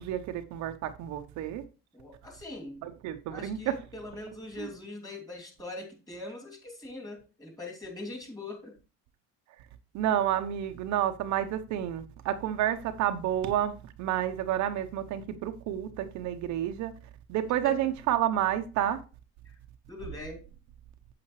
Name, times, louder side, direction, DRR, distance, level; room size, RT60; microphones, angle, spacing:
voice 1, 0.0-1.6 2.8-3.8 4.6-4.7 9.9-16.9 17.3-19.0, right 11 dB, 65° right, 0.9 m, -30 dB
voice 2, 1.9-2.8 3.3-8.8 17.6-17.9 19.4-19.5 19.9-20.5, left 2 dB, 10° left, 2.8 m, -42 dB
8.6 x 7.8 x 3.1 m
cardioid pair, 130°, 31 cm